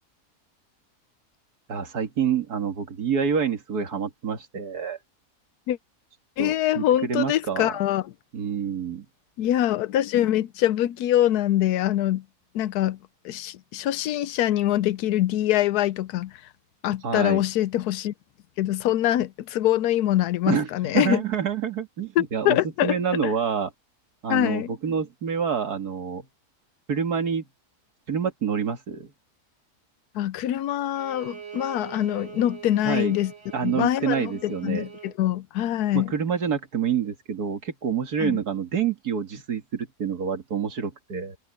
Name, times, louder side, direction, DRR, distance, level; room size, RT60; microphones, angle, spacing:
voice 1, 1.7-5.0 6.4-7.8 8.3-9.1 17.0-17.4 20.5-23.7 24.2-26.3 26.9-27.4 28.1-29.1 32.8-33.2 33.5-34.9 35.9-41.4, right 7 dB, 85° right, 2.5 m, -27 dB
voice 2, 6.4-8.0 9.4-12.2 12.5-13.0 13.2-16.3 16.8-18.1 18.6-21.2 22.2-23.3 24.3-24.7 30.1-33.3 33.6-36.1 38.2-38.4, left 12 dB, 90° left, 1.2 m, -24 dB
Bowed string instrument, 30.9-35.2, right 8 dB, 20° right, 1.6 m, -43 dB
omnidirectional pair, 1.6 m